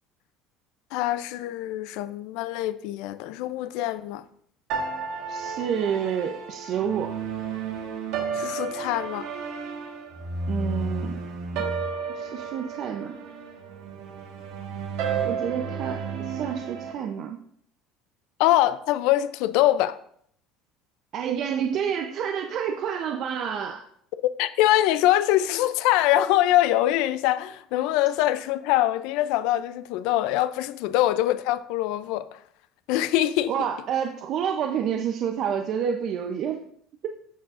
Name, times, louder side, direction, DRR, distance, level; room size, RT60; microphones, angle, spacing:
voice 1, 0.9-4.2 8.3-9.3 18.4-20.0 24.4-32.4 32.9-33.5, left 14 dB, 75° left, 0.4 m, -23 dB
sound 1, 4.7-16.9, right 5 dB, 75° right, 1.4 m, -32 dB
voice 2, 5.3-7.2 10.5-11.2 11.5-11.7 12.1-13.2 15.2-17.4 21.1-23.8 33.5-36.6, right 8 dB, 50° right, 0.6 m, -29 dB
13.5 x 4.7 x 2.5 m
cardioid pair, 125°, 0 cm